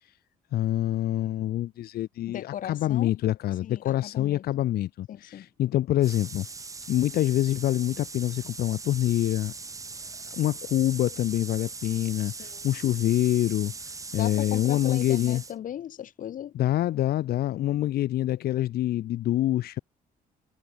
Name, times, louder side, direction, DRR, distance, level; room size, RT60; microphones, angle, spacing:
voice 1, 0.5-6.5 6.9-9.5 10.3-15.4 16.5-19.8, left 13 dB, 90° left, 1.1 m, -26 dB
voice 2, 2.3-3.1 3.6-4.4 5.1-5.5 12.2-12.6 14.1-16.5, left 10 dB, 60° left, 3.1 m, -37 dB
sound 1, 6.0-15.6, right 4 dB, 20° right, 5.0 m, -40 dB
cardioid pair, 175°, 16 cm